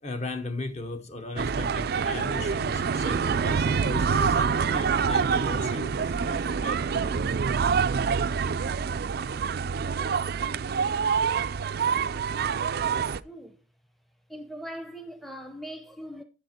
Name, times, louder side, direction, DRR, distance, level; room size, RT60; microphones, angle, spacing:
voice 1, 0.0-7.2, left 2 dB, 35° left, 1.1 m, -37 dB
sound 1, 1.4-13.2, right 6 dB, 55° right, 0.4 m, -26 dB
voice 2, 12.8-13.6 14.3-16.2, equal, ahead, 0.7 m, -41 dB
8.8 x 7.3 x 4.3 m
head